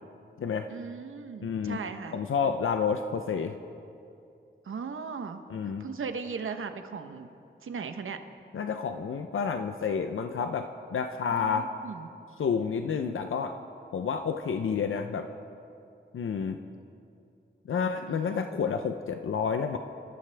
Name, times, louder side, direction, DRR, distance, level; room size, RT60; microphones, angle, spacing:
voice 1, 0.7-2.2 4.6-5.4 5.8-7.3 7.6-8.2 11.3-12.1 17.7-18.4, right 5 dB, 85° right, 8 dB, 1.0 m, -38 dB
voice 2, 1.4-1.8 2.1-3.5 5.5-5.9 8.5-11.7 12.4-13.5 13.9-15.3 16.1-16.6 17.7-19.8, left 6 dB, 85° left, 7 dB, 0.7 m, -29 dB
27.5 x 14.5 x 3.4 m, 2.6 s
cardioid pair, 60°, 20 cm